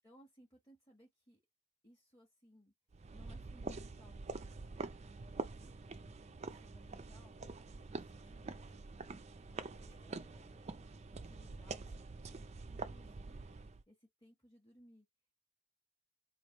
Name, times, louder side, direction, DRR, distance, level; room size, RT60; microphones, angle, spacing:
voice 1, 0.0-1.4 1.8-2.7 3.1-4.8 5.3-5.8 6.2-7.4 7.8-8.8 9.5-10.7 11.1-13.6 13.9-15.1, equal, 15° left, 1.2 m, -64 dB
sound 1, 2.9-13.8, right 3 dB, 30° right, 0.4 m, -46 dB
3.2 x 2.6 x 4.2 m
head